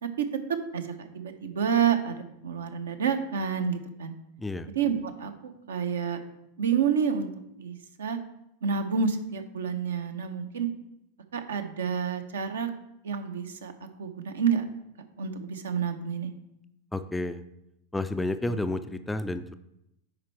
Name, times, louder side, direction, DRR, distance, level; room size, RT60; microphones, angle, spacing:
voice 1, 0.0-4.1 4.7-6.2 6.6-7.3 7.6-8.2 8.6-10.7 11.3-12.7 13.0-13.7 14.0-14.6 15.2-16.3, right 7 dB, 65° right, 8 dB, 0.8 m, -29 dB
voice 2, 4.4-4.7 16.9-17.4 17.9-19.6, left 2 dB, 10° left, 10 dB, 0.3 m, -31 dB
9.8 x 4.4 x 3.2 m, 0.81 s
figure-of-eight pair, 90°, 0 cm